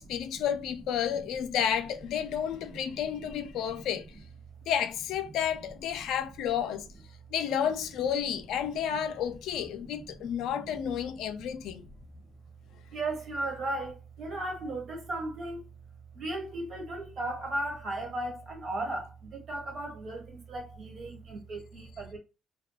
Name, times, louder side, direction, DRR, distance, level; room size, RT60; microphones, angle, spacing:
voice 1, 0.0-4.0 4.7-6.9 7.3-11.8, left 9 dB, 85° left, 0.4 m, -31 dB
voice 2, 3.6-4.0 9.7-10.1 10.4-10.9 11.4-11.5 11.8-11.9 12.9-15.7 16.1-22.2, right 2 dB, 55° right, 1.2 m, -36 dB
2.3 x 2.2 x 2.6 m
cardioid pair, 90°, 0 cm